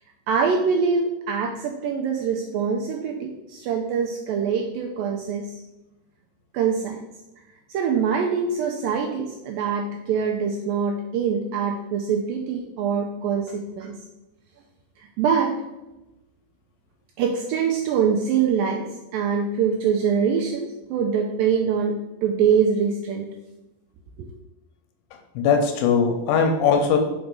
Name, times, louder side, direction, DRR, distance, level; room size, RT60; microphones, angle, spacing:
voice 1, 0.3-5.6 6.5-7.0 7.7-13.9 15.0-15.6 17.2-18.8 19.1-22.0 22.2-23.3 24.2-24.3, right 6 dB, 85° right, 2 dB, 2.0 m, -24 dB
voice 2, 25.4-27.0, left 6 dB, 75° left, 4 dB, 2.2 m, -20 dB
5.3 x 4.6 x 5.3 m, 0.98 s
omnidirectional pair, 4.6 m